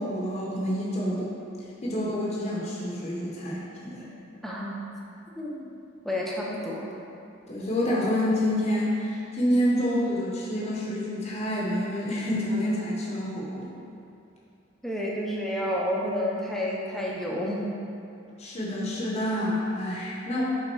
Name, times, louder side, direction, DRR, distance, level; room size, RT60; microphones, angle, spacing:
voice 1, 0.0-1.3 1.8-4.0 7.5-13.7 18.4-20.4, equal, 30° left, -5 dB, 0.8 m, -28 dB
voice 2, 4.4-4.9 5.4-5.7 6.0-6.9 14.8-17.6, left 1 dB, ahead, -4 dB, 0.6 m, -30 dB
5.8 x 3.7 x 4.5 m, 2.6 s
head